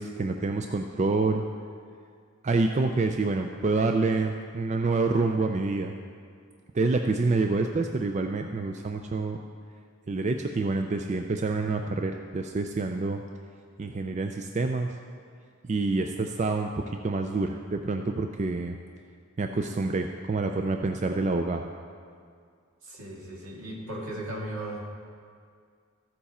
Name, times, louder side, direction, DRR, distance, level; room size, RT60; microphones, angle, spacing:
voice 1, 0.0-1.4 2.4-5.9 6.7-9.4 10.1-13.2 13.8-14.9 15.7-16.7 17.0-18.8 19.4-21.7, right 3 dB, 30° right, 5 dB, 0.3 m, -27 dB
voice 2, 22.8-25.0, right 1 dB, 75° right, -2 dB, 2.0 m, -37 dB
14.0 x 7.1 x 4.2 m, 2.2 s
head